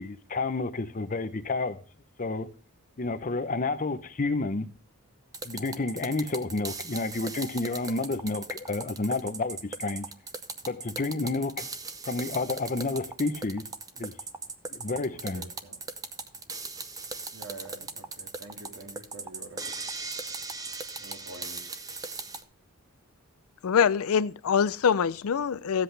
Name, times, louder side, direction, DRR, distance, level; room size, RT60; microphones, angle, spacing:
voice 1, 0.0-1.8 2.2-2.5 3.0-4.7 5.4-10.1 10.7-11.7 12.0-13.6 14.0-14.1 14.7-15.5, left 3 dB, 35° left, 0.7 m, -30 dB
sound 1, 5.3-22.4, right 4 dB, 15° right, 0.6 m, -38 dB
voice 2, 15.3-15.8 17.3-19.7 21.0-21.7, right 2 dB, 70° right, 2.1 m, -46 dB
voice 3, 23.6-25.8, left 7 dB, 75° left, 0.4 m, -24 dB
14.5 x 7.9 x 3.3 m
head